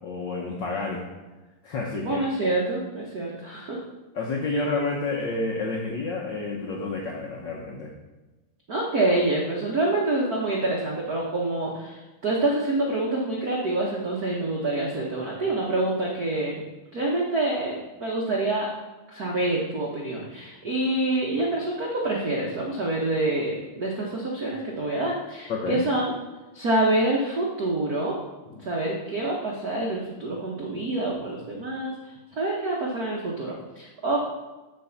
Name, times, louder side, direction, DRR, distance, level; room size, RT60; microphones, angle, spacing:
voice 1, 0.0-1.0 1.6-2.2 4.1-7.9 25.5-25.8 28.5-28.6, left 3 dB, 90° left, -1 dB, 1.0 m, -29 dB
voice 2, 2.0-3.8 4.5-4.6 8.7-16.6 16.9-18.7 19.1-26.1 26.5-28.2 28.6-31.9 32.3-34.2, right 2 dB, 80° right, -3 dB, 0.8 m, -26 dB
7.9 x 4.5 x 7.1 m, 1.1 s
omnidirectional pair, 3.5 m